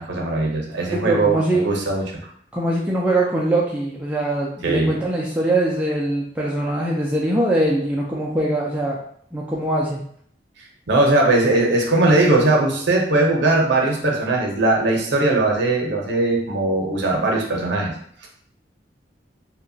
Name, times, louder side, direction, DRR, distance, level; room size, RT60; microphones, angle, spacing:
voice 1, 0.0-2.0 4.6-4.9 10.9-17.9 18.2-18.3, right 2 dB, 65° right, 0 dB, 0.7 m, -19 dB
voice 2, 0.9-1.6 2.5-9.0 9.3-10.0, right 1 dB, 5° right, -5 dB, 0.3 m, -22 dB
2.8 x 2.2 x 2.6 m, 0.62 s
head